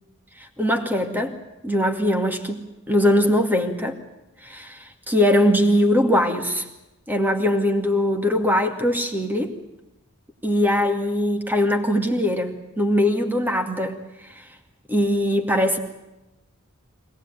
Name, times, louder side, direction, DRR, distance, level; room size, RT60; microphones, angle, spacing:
voice 1, 0.6-1.4 1.6-4.0 4.4-6.6 7.1-9.6 10.4-14.4 14.9-15.8, left 1 dB, 10° right, 4 dB, 2.2 m, -21 dB
25.0 x 18.0 x 9.2 m, 0.96 s
head